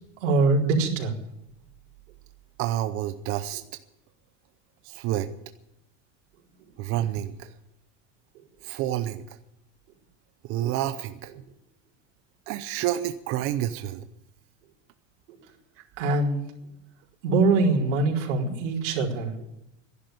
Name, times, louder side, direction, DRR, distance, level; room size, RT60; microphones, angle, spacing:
voice 1, 0.2-1.1 16.0-16.4 17.2-19.3, right 3 dB, 80° right, -2 dB, 4.4 m, -23 dB
voice 2, 2.6-3.6 4.8-5.3 6.8-7.5 8.6-9.2 10.4-11.3 12.5-14.0, right 13 dB, 35° right, 10 dB, 0.7 m, -29 dB
11.5 x 11.0 x 9.4 m, 0.85 s
supercardioid pair, 155°, 36 cm